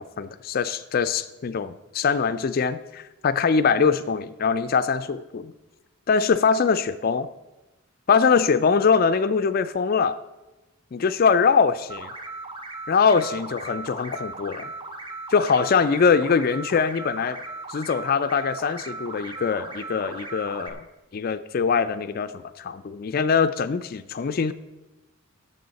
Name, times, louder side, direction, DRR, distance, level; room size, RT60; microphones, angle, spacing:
voice 1, 0.0-5.5 6.1-7.3 8.1-10.2 10.9-12.1 12.9-14.7 15.3-17.4 17.7-20.8 21.1-24.5, left 5 dB, 45° left, 12 dB, 0.4 m, -22 dB
sound 1, 11.9-20.7, right 2 dB, 25° right, 1.0 m, -37 dB
16.5 x 7.0 x 4.0 m, 1.1 s
head